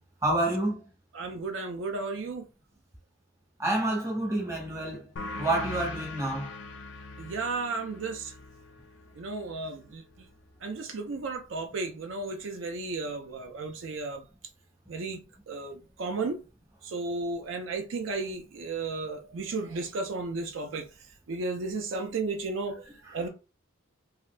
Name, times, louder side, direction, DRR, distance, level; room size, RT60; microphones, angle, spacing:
voice 1, 0.2-0.8 3.6-5.1 5.4-6.5, right 1 dB, 15° right, 0.9 m, -28 dB
voice 2, 1.1-2.5 7.2-8.3 9.2-10.0 10.6-14.2 14.9-15.2 15.5-16.4 16.8-20.9 21.3-22.8 23.1-23.3, right 3 dB, 70° right, 0.4 m, -34 dB
sound 1, 5.2-10.3, left 3 dB, 65° left, 0.4 m, -41 dB
2.6 x 2.5 x 3.2 m
head